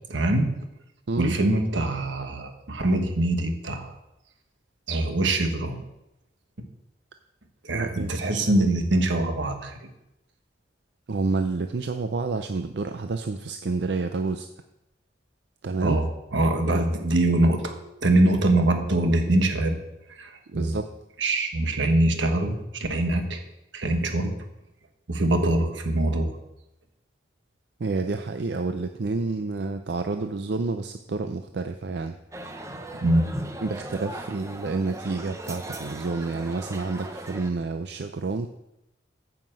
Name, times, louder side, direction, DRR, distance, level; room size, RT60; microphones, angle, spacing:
voice 1, 0.1-0.5 1.2-3.9 4.9-5.8 7.6-9.9 15.8-19.8 20.1-20.8 21.2-23.4 23.7-24.4 25.1-26.4 33.0-33.2, right 1 dB, 85° right, 5 dB, 1.4 m, -23 dB
voice 2, 7.7-8.6 11.1-14.5 15.6-16.0 16.7-16.8 20.5-20.9 27.8-32.1 33.6-38.5, right 3 dB, 65° right, 7 dB, 0.5 m, -29 dB
sound 1, 32.3-37.5, right 1 dB, 15° right, 0.7 m, -38 dB
9.2 x 5.8 x 7.5 m, 0.88 s
head